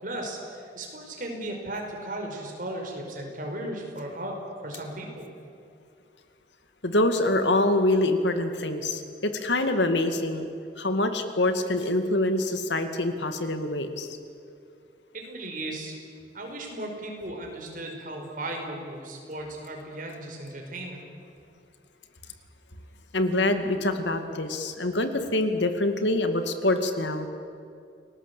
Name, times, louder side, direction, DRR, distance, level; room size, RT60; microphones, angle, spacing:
voice 1, 0.0-4.4 4.6-5.2 15.1-15.9 16.3-21.0, right 1 dB, 45° right, 2 dB, 5.2 m, -36 dB
voice 2, 6.8-10.5 10.8-14.2 23.1-27.3, left 2 dB, 75° left, 8 dB, 2.3 m, -25 dB
29.0 x 19.0 x 8.4 m, 2.5 s
head